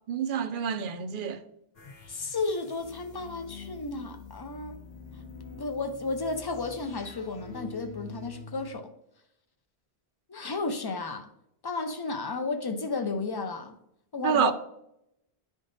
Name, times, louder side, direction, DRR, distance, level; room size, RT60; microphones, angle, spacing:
voice 1, 0.0-1.4 14.2-14.5, right 8 dB, 60° right, 0.6 m, -28 dB
sound 1, 1.7-8.7, left 4 dB, 65° left, 1.1 m, -46 dB
voice 2, 2.1-4.8 5.6-8.9 10.3-11.3 11.6-13.8 14.1-14.5, left 3 dB, 35° left, 0.4 m, -33 dB
11.0 x 3.7 x 2.6 m
omnidirectional pair, 1.1 m